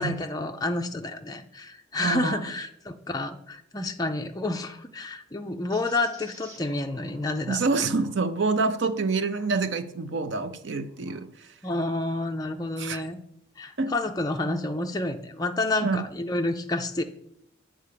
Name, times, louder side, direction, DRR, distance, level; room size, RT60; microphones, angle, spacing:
voice 1, 0.0-7.6 11.6-13.2 13.6-17.0, left 2 dB, 20° left, 4 dB, 0.5 m, -29 dB
voice 2, 2.0-2.4 7.5-11.3 12.8-13.0 13.8-13.9 15.8-16.0, right 4 dB, 65° right, 10 dB, 0.6 m, -26 dB
sound 1, 5.7-11.3 11.8-13.0, equal, 15° right, 1.6 m, -54 dB
8.4 x 3.7 x 6.7 m, 0.74 s
head